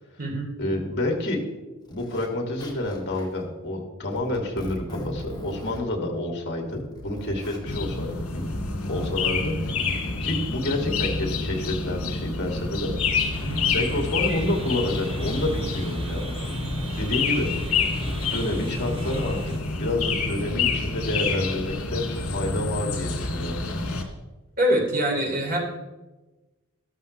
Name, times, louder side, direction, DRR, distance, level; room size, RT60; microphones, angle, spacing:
voice 1, 0.6-1.4 1.9-8.1 8.3-8.4 8.9-9.5 10.2-12.9 13.7-16.4 17.0-17.5 18.3-19.5 19.8-23.6, left 1 dB, 55° left, 1 dB, 2.4 m, -28 dB
Zipper (clothing), 1.0-1.1 1.9-2.3 2.6-3.4 4.1-5.8 6.6-7.6 8.6-10.1, left 1 dB, 20° left, 2.0 m, -40 dB
sound 1, 7.7-24.0, left 4 dB, 75° left, 2.2 m, -28 dB
sound 2, 13.3-19.6, right 1 dB, 25° right, 1.2 m, -37 dB
voice 2, 24.6-25.6, equal, 40° right, -1 dB, 2.9 m, -24 dB
14.0 x 13.0 x 3.3 m, 1.1 s
head